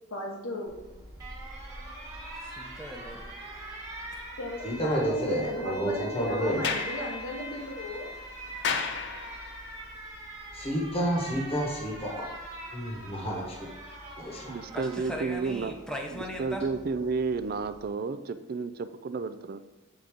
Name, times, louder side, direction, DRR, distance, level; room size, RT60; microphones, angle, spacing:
voice 1, 0.1-1.0 4.4-8.1, left 1 dB, 75° left, 0 dB, 1.0 m, -35 dB
Alarm, 0.7-17.9, right 1 dB, 15° right, 1.2 m, -43 dB
voice 2, 2.4-3.3 14.7-16.6, equal, 5° left, 1 dB, 0.7 m, -38 dB
voice 3, 4.6-6.6 10.5-12.2 12.7-13.7 14.2-14.6, equal, 25° left, -2 dB, 1.1 m, -30 dB
Sliding door, 6.4-9.7, left 5 dB, 55° left, 0.5 m, -35 dB
voice 4, 14.5-15.7 16.1-19.6, right 4 dB, 45° right, 12 dB, 0.3 m, -32 dB
8.0 x 3.8 x 3.5 m, 1.0 s
head